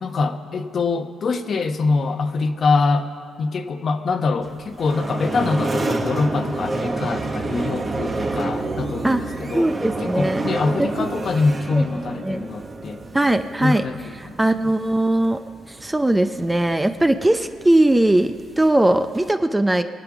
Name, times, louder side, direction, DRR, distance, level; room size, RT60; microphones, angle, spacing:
voice 1, 0.0-3.1 3.4-9.7 10.0-13.0 13.6-13.9 14.2-14.4, left 4 dB, 50° left, 7 dB, 1.0 m, -24 dB
sound 1, 4.4-19.3, right 2 dB, 35° right, 1.3 m, -29 dB
voice 2, 9.5-10.4 10.8-11.2 11.7-11.8 12.2-12.4 13.1-13.8 14.4-15.4 15.7-19.8, right 1 dB, 10° right, 9 dB, 0.6 m, -19 dB
23.5 x 8.1 x 6.0 m, 2.1 s
cardioid pair, 90°, 0 cm